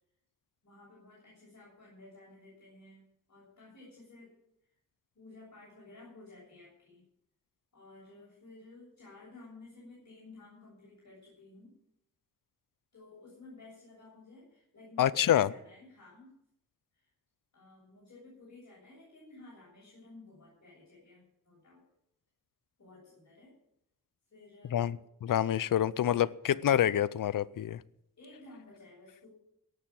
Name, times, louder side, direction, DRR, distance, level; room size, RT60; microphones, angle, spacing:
voice 1, 0.6-3.0 3.3-4.3 5.1-7.0 7.7-11.7 12.9-16.3 16.9-17.1 17.5-21.8 22.8-23.5 24.3-25.0 28.2-29.3, left 2 dB, 55° left, 7.5 m, -54 dB
voice 2, 15.0-15.5 24.7-27.8, left 11 dB, 75° left, 0.6 m, -27 dB
18.0 x 7.1 x 8.7 m
wide cardioid pair, 85°, 33 cm